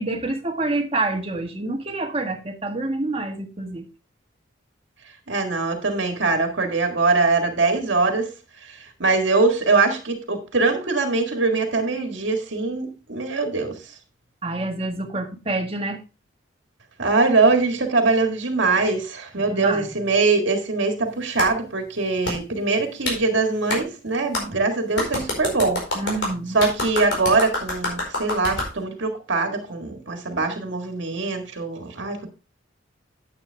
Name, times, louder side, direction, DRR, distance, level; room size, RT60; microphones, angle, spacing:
voice 1, 0.0-3.8 14.4-16.0 19.5-20.0 25.9-26.6, right 2 dB, 30° right, 1.6 m, -27 dB
voice 2, 5.3-8.3 8.7-13.8 17.0-25.8 26.5-32.3, right 3 dB, 70° right, 1.8 m, -22 dB
Clapping, 21.4-21.5 22.2-22.4 23.0-23.2 23.7-23.8 24.3-24.4 25.0-28.7, left 1 dB, 65° left, 4.6 m, -26 dB
9.6 x 8.5 x 3.4 m
head